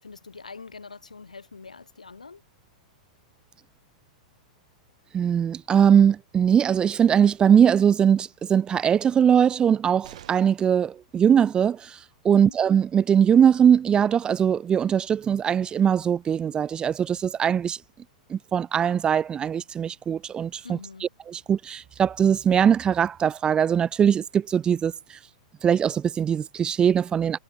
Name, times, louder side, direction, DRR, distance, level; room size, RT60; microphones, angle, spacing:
voice 1, 0.0-2.4 12.2-12.6 20.6-21.1, left 4 dB, 90° left, 7.2 m, -43 dB
voice 2, 5.1-12.0 12.2-17.8 18.3-20.8 21.3-24.9 25.6-27.4, right 8 dB, 25° right, 0.9 m, -21 dB
sound 1, 10.0-10.8 12.7-12.8 13.1-13.2, right 12 dB, 65° right, 7.1 m, -48 dB
hypercardioid pair, 105°, 4 cm